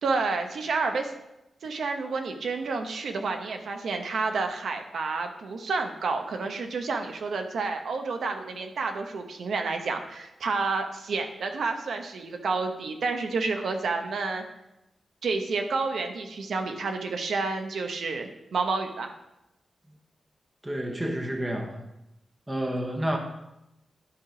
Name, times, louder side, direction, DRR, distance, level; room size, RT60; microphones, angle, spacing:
voice 1, 0.0-1.1 1.6-14.4 15.2-19.1, right 4 dB, 70° right, 5 dB, 0.9 m, -30 dB
voice 2, 20.6-21.8 22.5-23.2, right 1 dB, 15° right, 3 dB, 0.9 m, -29 dB
11.5 x 4.8 x 5.0 m, 0.90 s
wide cardioid pair, 175°, 0 cm